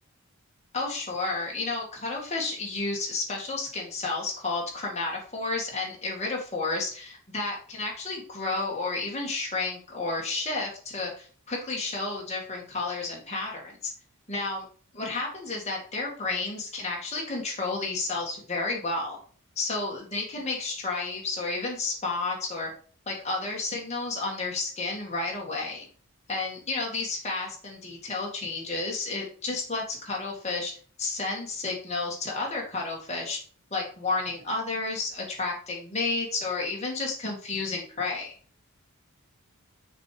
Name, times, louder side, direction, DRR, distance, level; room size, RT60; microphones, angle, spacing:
voice 1, 0.7-13.9 14.3-14.6 14.9-19.2 19.6-22.7 23.1-25.9 26.3-30.7 31.0-33.4 33.7-38.3, left 3 dB, 30° left, -2 dB, 2.1 m, -31 dB
6.8 x 4.5 x 4.9 m, 0.42 s
head